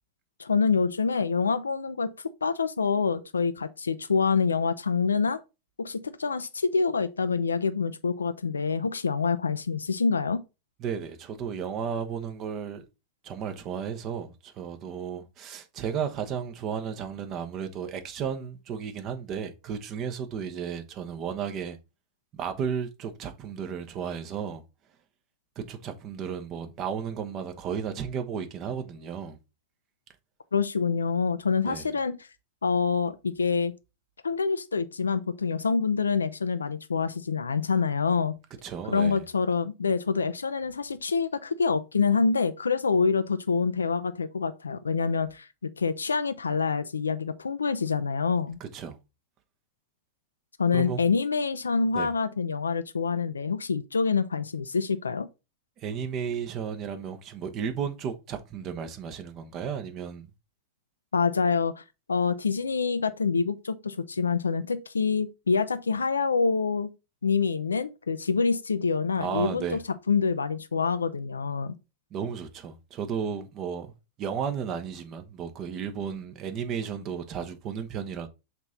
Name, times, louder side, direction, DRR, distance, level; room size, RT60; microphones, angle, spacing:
voice 1, 0.4-2.1 2.4-5.4 5.8-10.4 30.5-32.2 32.6-33.7 34.2-38.4 38.8-45.5 45.8-48.6 50.6-55.3 61.1-66.9 67.2-69.8 70.1-71.7, left 5 dB, 75° left, 0.4 m, -26 dB
voice 2, 10.8-12.8 13.2-21.8 22.3-24.6 25.6-29.4 31.7-31.9 38.6-39.2 48.6-49.0 50.7-51.0 51.9-52.1 55.8-60.3 69.2-69.8 72.1-73.9 74.2-78.3, right 7 dB, 35° right, 1.1 m, -34 dB
6.0 x 4.3 x 3.7 m
figure-of-eight pair, 90°, 0 cm